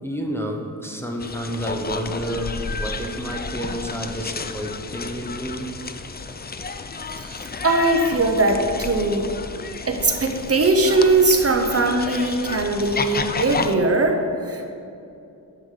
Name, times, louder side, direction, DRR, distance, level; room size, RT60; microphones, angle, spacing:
voice 1, 0.0-5.7, equal, 5° left, 1 dB, 0.9 m, -30 dB
sound 1, 1.2-13.8, left 4 dB, 25° left, 0.4 m, -31 dB
voice 2, 7.2-9.3 9.9-14.6, right 2 dB, 40° right, 3 dB, 0.9 m, -20 dB
9.9 x 7.2 x 5.0 m, 2.6 s
wide cardioid pair, 115°, 37 cm